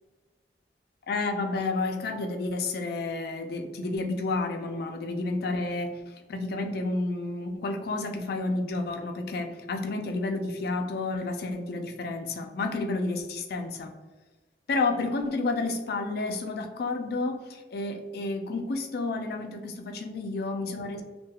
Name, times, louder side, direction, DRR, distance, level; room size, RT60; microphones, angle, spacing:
voice 1, 1.1-13.9 14.7-21.0, left 3 dB, 60° left, 5 dB, 0.4 m, -30 dB
2.3 x 2.2 x 2.8 m, 1.2 s
head